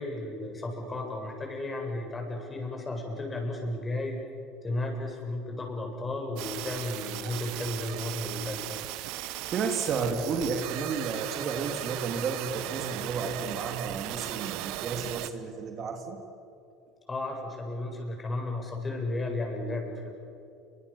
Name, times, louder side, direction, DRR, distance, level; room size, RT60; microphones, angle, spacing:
voice 1, 0.0-4.2 4.6-8.6 17.1-20.1, left 2 dB, 25° left, 2 dB, 7.9 m, -34 dB
sound 1, 6.4-15.3, right 15 dB, 60° right, 1.2 m, -37 dB
voice 2, 9.5-16.2, right 5 dB, 45° right, 4 dB, 3.2 m, -32 dB
29.5 x 24.5 x 7.3 m, 2.6 s
hypercardioid pair, 70°, 0 cm